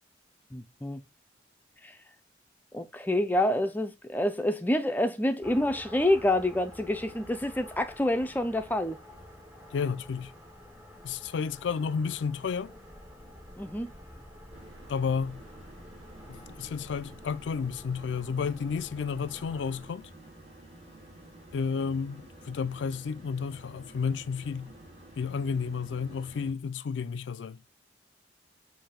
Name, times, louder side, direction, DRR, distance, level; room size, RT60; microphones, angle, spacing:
voice 1, 0.5-1.0 1.8-2.0 2.7-9.0 13.6-13.9, left 1 dB, 10° left, 0.4 m, -27 dB
sound 1, 5.4-19.9, left 1 dB, 10° right, 1.1 m, -49 dB
voice 2, 9.7-10.3 11.0-12.7 14.9-15.4 16.3-20.1 21.5-24.7 25.2-27.6, left 5 dB, 80° left, 0.4 m, -32 dB
sound 2, 14.5-26.5, right 1 dB, 35° right, 1.8 m, -51 dB
7.8 x 2.6 x 5.0 m
head